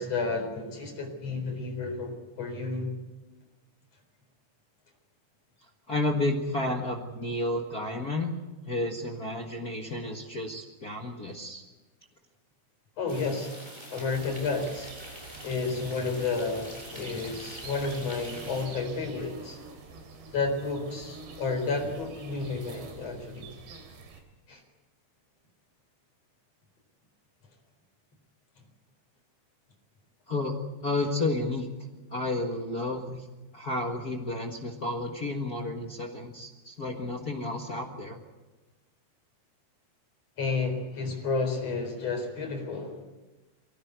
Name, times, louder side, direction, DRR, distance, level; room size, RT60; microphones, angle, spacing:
voice 1, 0.0-2.9 13.0-13.5 13.9-14.9 15.4-19.6 20.3-23.5 24.5-24.6 40.4-43.0, left 4 dB, 40° left, 4 dB, 5.1 m, -31 dB
voice 2, 5.9-8.3 8.7-11.6 30.3-30.5 30.8-31.7 32.1-33.3 33.5-38.2, left 2 dB, 65° left, 1 dB, 0.9 m, -31 dB
sound 1, 13.1-18.7, equal, 5° right, 6.3 m, -45 dB
sound 2, 14.1-24.2, right 3 dB, 80° right, 5.2 m, -46 dB
24.0 x 18.0 x 8.2 m, 1.2 s
omnidirectional pair, 4.7 m